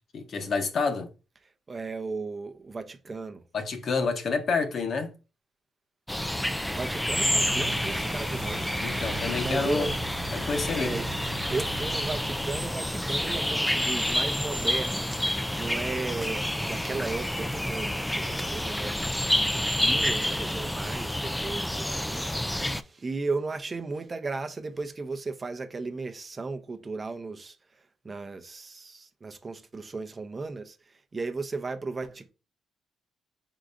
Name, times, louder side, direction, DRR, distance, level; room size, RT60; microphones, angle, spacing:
voice 1, 0.1-1.1 3.5-5.1 8.8-9.9 10.3-11.0, left 4 dB, 50° left, 0.9 m, -28 dB
voice 2, 1.4-3.5 6.7-8.7 9.4-9.9 10.7-11.1 11.5-15.1 15.6-27.6 28.0-32.3, right 3 dB, 30° right, 0.6 m, -35 dB
sound 1, 6.1-22.8, left 1 dB, 5° left, 0.3 m, -29 dB
sound 2, 7.2-12.5, right 7 dB, 80° right, 0.4 m, -41 dB
4.7 x 3.8 x 2.6 m
cardioid pair, 90°, 0 cm